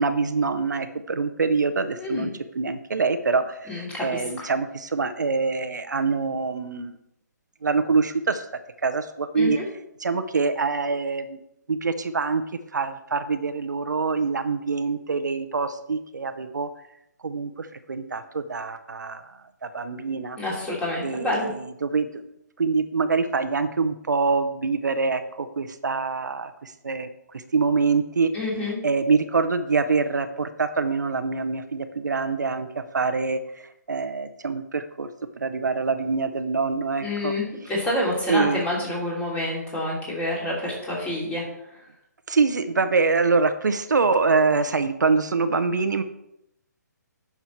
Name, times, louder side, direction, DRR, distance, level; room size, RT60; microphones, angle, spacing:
voice 1, 0.0-2.3 2.6-7.0 7.6-8.5 8.8-9.6 10.0-11.4 11.7-12.4 12.7-16.7 17.2-19.3 19.6-20.4 21.0-22.1 22.6-28.3 28.8-33.4 33.9-35.1 35.4-37.3 38.3-38.6 40.6-40.7 42.3-46.0, right 4 dB, 75° right, 9 dB, 0.7 m, -25 dB
voice 2, 1.9-2.3 3.7-4.5 9.4-9.6 20.4-21.5 28.3-28.8 37.0-41.4 41.7-41.8, left 1 dB, 10° left, -4 dB, 2.9 m, -28 dB
9.0 x 6.0 x 4.5 m, 0.81 s
figure-of-eight pair, 140°, 10 cm